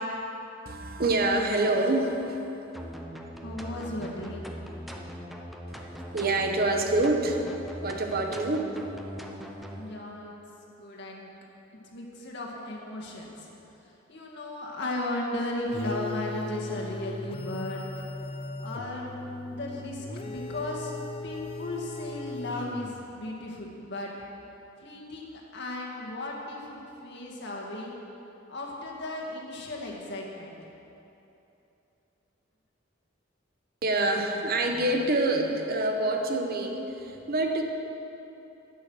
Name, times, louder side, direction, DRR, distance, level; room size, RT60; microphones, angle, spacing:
voice 1, 0.7-2.7 5.7-7.4 7.8-8.6 9.0-9.3 33.8-37.6, right 2 dB, 50° right, 4 dB, 1.0 m, -27 dB
sound 1, 2.7-9.8, equal, ahead, 0.8 m, -41 dB
voice 2, 3.4-4.4 9.7-10.3 10.7-11.3 11.9-13.5 14.1-18.0 18.6-19.1 19.5-20.9 21.2-24.1 24.8-28.0 28.5-30.6, left 1 dB, 65° left, -2 dB, 2.0 m, -36 dB
sound 2, 15.7-23.2, left 2 dB, 30° left, 0.4 m, -38 dB
11.0 x 9.2 x 6.3 m, 3.0 s
head